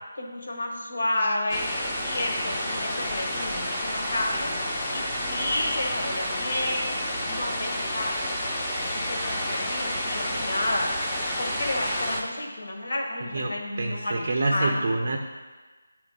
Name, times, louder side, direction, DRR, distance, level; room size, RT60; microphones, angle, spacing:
voice 1, 0.1-1.7 2.0-4.5 4.9-7.0 7.3-8.5 8.9-10.9 11.4-15.1, left 1 dB, 60° left, 0 dB, 1.3 m, -31 dB
sound 1, 1.5-12.2, left 1 dB, 10° left, 0.7 m, -30 dB
voice 2, 13.8-15.2, right 2 dB, 50° right, 2 dB, 0.5 m, -26 dB
8.0 x 3.1 x 4.7 m, 1.3 s
figure-of-eight pair, 165°, 0 cm